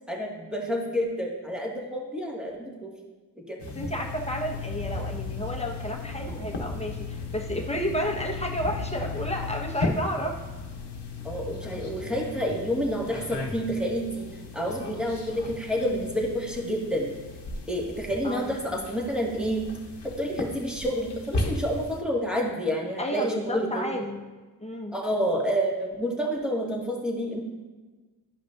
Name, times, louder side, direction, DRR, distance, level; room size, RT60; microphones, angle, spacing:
voice 1, 0.1-2.9 3.5-3.6 11.2-14.3 14.5-17.1 17.7-19.7 20.2-23.9 24.9-27.4, equal, ahead, -2 dB, 1.9 m, -29 dB
sound 1, 3.6-22.0, left 3 dB, 80° left, 1.1 m, -36 dB
voice 2, 3.7-10.4 18.2-18.8 23.0-24.2 24.6-24.9, equal, 15° left, 1 dB, 1.3 m, -31 dB
11.0 x 5.4 x 2.6 m, 1.3 s
cardioid pair, 40°, 41 cm